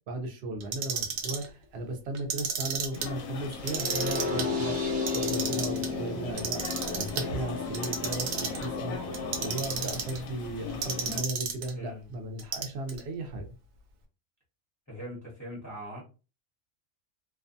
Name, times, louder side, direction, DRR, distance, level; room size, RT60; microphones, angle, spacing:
voice 1, 0.1-6.6 6.9-9.1 9.4-13.5, right 2 dB, 60° right, 4 dB, 0.8 m, -36 dB
Clock, 0.6-1.5 2.1-3.1 3.5-4.5 4.9-5.9 6.4-7.2 7.7-8.7 9.1-10.2 10.8-11.7 12.4-13.0, right 6 dB, 85° right, 1.0 m, -32 dB
sound 1, 2.9-11.2, left 5 dB, 90° left, 1.0 m, -39 dB
sound 2, 3.6-9.6, left 4 dB, 30° right, 0.8 m, -33 dB
voice 2, 11.8-12.1 14.9-16.0, equal, 15° left, -5 dB, 0.7 m, -41 dB
2.5 x 2.2 x 2.5 m, 0.32 s
omnidirectional pair, 1.4 m